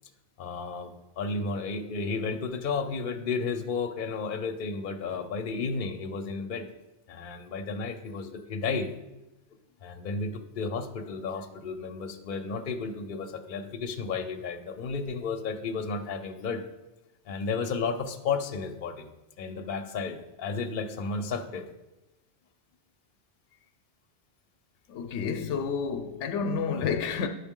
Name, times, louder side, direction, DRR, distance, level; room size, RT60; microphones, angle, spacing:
voice 1, 0.4-6.6 7.1-8.9 9.8-16.6 17.3-19.1 19.4-21.7, left 4 dB, 50° left, 0.8 m, -33 dB
voice 2, 24.9-27.3, left 6 dB, 75° left, 0.9 m, -30 dB
9.6 x 6.2 x 3.7 m
omnidirectional pair, 1.2 m